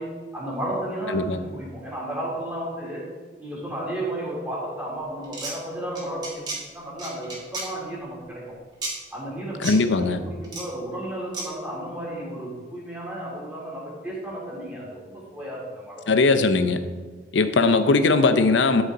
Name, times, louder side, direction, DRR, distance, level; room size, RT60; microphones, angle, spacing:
voice 1, 0.0-3.1 3.4-6.5 6.7-8.6 9.1-16.1, right 1 dB, 10° right, -6 dB, 3.0 m, -33 dB
sound 1, 5.2-5.5 6.0-6.6 7.0-7.7 8.8-8.9 9.6-9.8 10.4-10.6 11.3-11.5, right 2 dB, 25° right, 2.2 m, -32 dB
voice 2, 9.6-10.2 16.1-16.8 17.3-18.8, left 3 dB, 85° left, 10 dB, 0.6 m, -19 dB
12.5 x 5.6 x 3.9 m, 1.4 s
head